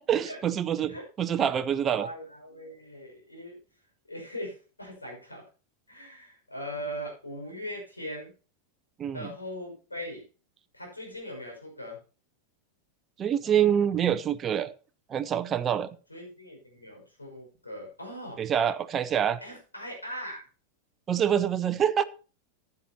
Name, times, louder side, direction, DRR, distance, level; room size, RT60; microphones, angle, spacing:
voice 1, 0.1-2.1 9.0-9.3 13.2-14.7 15.1-15.9 18.4-19.4 21.1-22.0, right 9 dB, 25° right, 0.6 m, -26 dB
voice 2, 1.8-3.6 4.1-5.4 5.9-8.3 9.1-10.2 10.7-12.0 16.1-18.4 19.4-20.5, equal, 80° left, 5.7 m, -40 dB
15.0 x 9.6 x 2.9 m
figure-of-eight pair, 90°, 0 cm